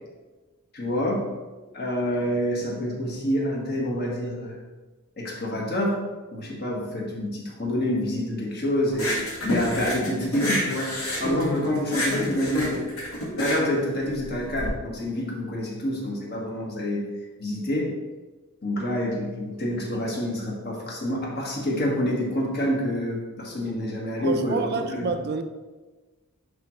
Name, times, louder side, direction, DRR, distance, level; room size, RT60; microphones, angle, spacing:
voice 1, 0.7-1.3 1.7-4.6 5.2-6.0 6.3-10.9 11.2-12.9 13.3-17.1 17.4-17.9 18.6-25.1, left 1 dB, 45° left, 1.6 m, -27 dB
sound 1, 8.9-14.7, equal, 70° left, 1.9 m, -29 dB
voice 2, 24.2-25.4, right 4 dB, 50° right, 0.4 m, -28 dB
10.5 x 3.6 x 3.1 m
head